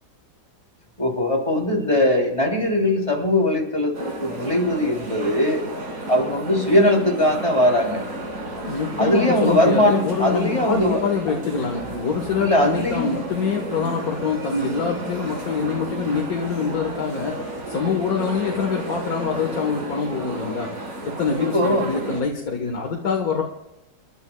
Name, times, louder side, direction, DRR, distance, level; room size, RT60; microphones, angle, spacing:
voice 1, 1.0-5.6 6.1-8.0 9.0-11.0 11.3-11.4 12.4-13.1 21.5-21.8, left 1 dB, 20° left, -1 dB, 3.3 m, -20 dB
sound 1, 3.9-22.2, right 1 dB, 55° right, 2.6 m, -33 dB
voice 2, 8.6-20.8 21.1-23.4, left 5 dB, 60° left, 1 dB, 1.9 m, -25 dB
29.0 x 12.0 x 2.3 m, 0.90 s
omnidirectional pair, 1.8 m